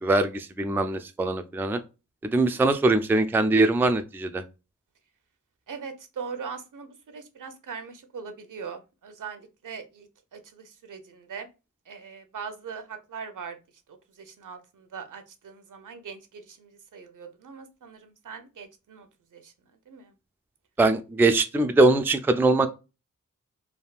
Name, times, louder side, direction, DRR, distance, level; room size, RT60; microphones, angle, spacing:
voice 1, 0.0-1.8 2.2-4.4 20.8-22.7, right 2 dB, 5° right, 0.3 m, -22 dB
voice 2, 5.7-11.5 11.9-13.6 13.9-19.5 19.9-20.1, right 6 dB, 70° right, 0.7 m, -41 dB
3.4 x 2.2 x 2.4 m
cardioid pair, 55°, 32 cm